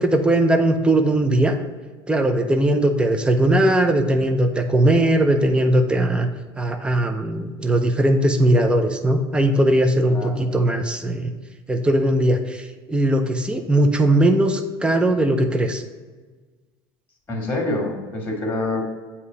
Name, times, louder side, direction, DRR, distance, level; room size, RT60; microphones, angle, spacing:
voice 1, 0.0-1.6 2.1-6.3 6.6-11.3 11.7-15.8, right 1 dB, 10° right, 5 dB, 0.6 m, -19 dB
voice 2, 10.1-10.5 17.3-18.9, left 2 dB, 15° left, 0 dB, 1.8 m, -26 dB
7.9 x 2.9 x 4.9 m, 1.4 s
hypercardioid pair, 90°, 13 cm